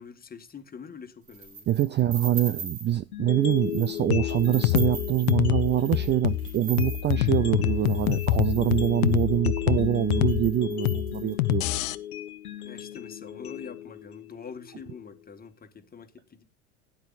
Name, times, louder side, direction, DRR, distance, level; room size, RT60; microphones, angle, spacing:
voice 1, 0.0-1.7 12.6-16.4, left 6 dB, 20° left, 1.6 m, -44 dB
sound 1, 1.3-3.0 3.4-4.0 4.3-9.3 9.9-10.0 10.2-11.8, right 5 dB, 75° right, 4.1 m, -41 dB
voice 2, 1.7-11.9, right 12 dB, 25° right, 0.5 m, -25 dB
sound 2, 3.1-15.1, left 12 dB, 85° left, 1.4 m, -36 dB
sound 3, 4.1-12.0, left 13 dB, 65° left, 0.8 m, -26 dB
17.0 x 9.8 x 2.5 m
hypercardioid pair, 85°, 43 cm